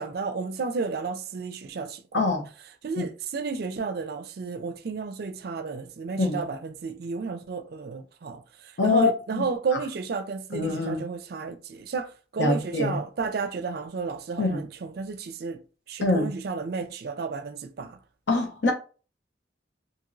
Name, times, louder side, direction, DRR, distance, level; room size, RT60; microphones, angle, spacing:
voice 1, 0.0-2.3 2.8-8.4 8.8-15.6 15.9-18.0, right 4 dB, 55° right, 0.4 m, -32 dB
voice 2, 2.1-2.5 3.0-3.1 6.2-6.4 8.8-9.5 10.5-11.0 12.4-13.0 14.4-14.6 16.0-16.3 18.3-18.7, left 3 dB, 75° left, 0.7 m, -24 dB
2.9 x 2.6 x 2.6 m
head